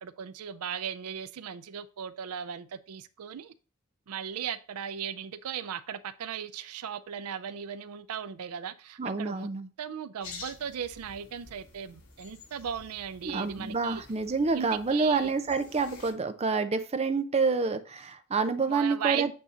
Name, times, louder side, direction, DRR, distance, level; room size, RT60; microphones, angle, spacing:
voice 1, 0.0-3.5 4.1-9.5 9.8-14.0 14.5-15.3 18.7-19.3, right 8 dB, 90° right, 0.4 m, -37 dB
voice 2, 9.0-9.7 13.2-19.3, right 4 dB, 30° right, 0.5 m, -28 dB
sound 1, 10.2-16.1, left 4 dB, 75° left, 3.1 m, -49 dB
8.5 x 2.8 x 4.9 m
head